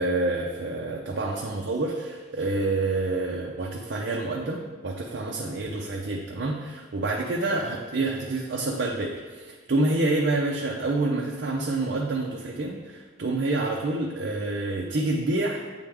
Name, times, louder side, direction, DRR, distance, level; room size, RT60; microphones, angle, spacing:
voice 1, 0.0-15.6, right 2 dB, 55° right, -1 dB, 0.5 m, -28 dB
8.5 x 3.3 x 3.5 m, 1.5 s
head